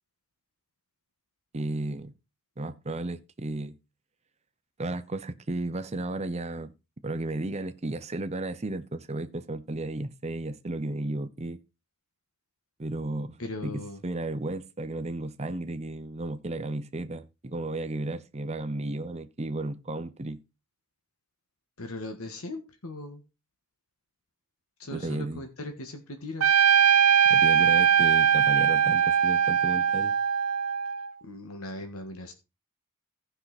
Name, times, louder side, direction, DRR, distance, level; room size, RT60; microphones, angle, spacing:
voice 1, 1.5-2.1 2.6-3.7 4.8-6.7 7.0-11.6 12.8-13.4 13.6-20.4 24.9-25.4 27.3-30.1, right 2 dB, 30° right, 0.7 m, -33 dB
voice 2, 13.4-14.0 21.8-23.2 24.8-26.5 31.2-32.3, left 2 dB, 75° left, 1.5 m, -38 dB
Trumpet, 26.4-31.1, right 8 dB, 80° right, 0.7 m, -21 dB
15.0 x 5.6 x 4.1 m
head